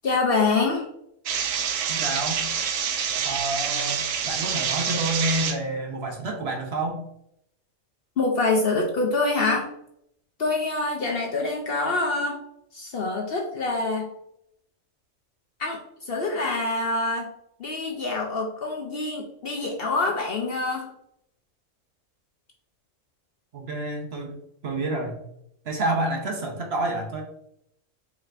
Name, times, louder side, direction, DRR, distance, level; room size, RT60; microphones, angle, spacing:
voice 1, 0.0-0.9 8.2-9.7 10.4-12.4 12.7-14.1 15.6-17.3 17.6-20.9, left 3 dB, 55° left, 1 dB, 0.7 m, -25 dB
sound 1, 1.3-5.6, right 7 dB, 75° right, 1.0 m, -27 dB
voice 2, 1.9-2.4 3.2-7.0 23.5-24.4 24.6-25.2 25.6-27.2, right 2 dB, 55° right, 2 dB, 1.0 m, -29 dB
4.9 x 4.0 x 2.5 m, 0.76 s
omnidirectional pair, 1.4 m